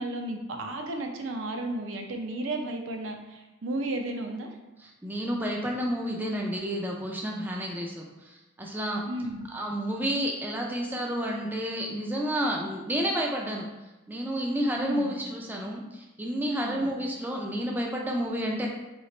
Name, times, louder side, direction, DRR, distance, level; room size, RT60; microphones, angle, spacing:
voice 1, 0.0-4.6 9.0-9.4 14.7-15.2 16.6-16.9, right 1 dB, 75° right, 3 dB, 0.5 m, -33 dB
voice 2, 4.8-9.0 9.5-13.6 14.1-18.7, equal, 10° right, -1 dB, 0.3 m, -30 dB
3.1 x 2.8 x 4.2 m, 1.1 s
head